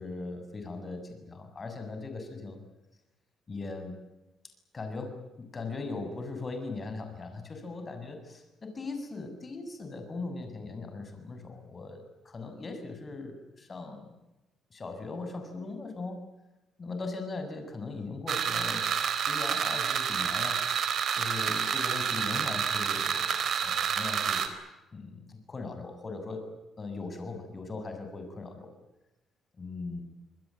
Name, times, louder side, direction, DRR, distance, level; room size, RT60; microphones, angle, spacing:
voice 1, 0.0-2.6 3.5-4.0 4.7-14.1 14.7-16.3 16.8-24.5 24.9-26.5 26.8-28.7 29.6-30.0, left 3 dB, 35° left, 7 dB, 7.4 m, -39 dB
sound 1, 18.3-24.5, right 7 dB, 60° right, 4.2 m, -29 dB
27.0 x 21.5 x 9.1 m, 1.0 s
cardioid pair, 90°, 0 cm